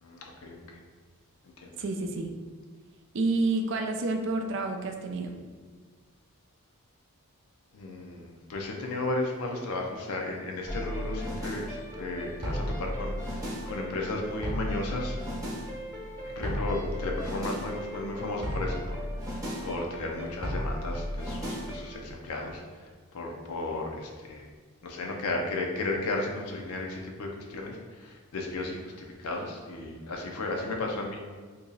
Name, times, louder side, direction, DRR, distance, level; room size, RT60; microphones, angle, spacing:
voice 1, 0.0-0.8 1.6-1.7 7.7-15.2 16.4-24.5 24.8-31.2, left 2 dB, 80° left, 1 dB, 0.5 m, -34 dB
voice 2, 1.8-2.3 3.1-5.4, right 3 dB, 55° right, 5 dB, 0.4 m, -29 dB
sound 1, 10.6-22.0, equal, 15° right, 0.8 m, -35 dB
2.9 x 2.7 x 3.8 m, 1.5 s
head